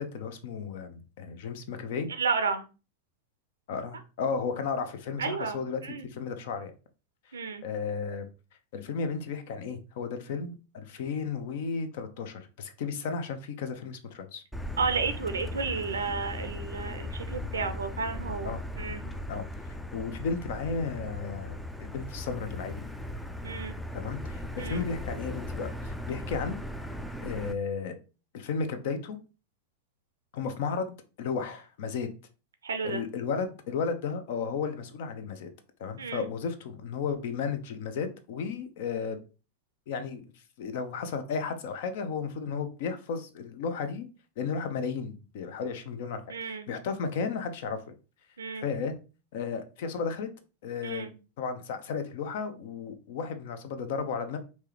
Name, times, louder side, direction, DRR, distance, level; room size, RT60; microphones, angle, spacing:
voice 1, 0.0-2.1 3.7-6.7 7.6-8.3 8.7-14.4 18.4-18.6 19.3-19.4 19.9-22.8 23.9-26.6 27.2-28.0 28.3-29.2 30.3-32.1 32.8-35.5 35.8-39.2 39.9-40.2 40.6-44.1 44.4-47.8 48.6-48.9 49.3-50.3 50.6-51.1 51.4-54.4, left 5 dB, 50° left, 9 dB, 0.6 m, -34 dB
voice 2, 2.2-2.7 5.2-6.1 7.3-7.6 14.8-19.0 23.4-23.8 24.6-24.8 32.6-33.0 36.0-36.3 46.3-46.7 48.4-48.7 50.8-51.1, right 5 dB, 70° right, 8 dB, 0.5 m, -32 dB
Motor vehicle (road), 14.5-27.5, left 1 dB, 5° left, 0.4 m, -38 dB
4.7 x 2.8 x 3.0 m, 0.33 s
figure-of-eight pair, 90°, 0 cm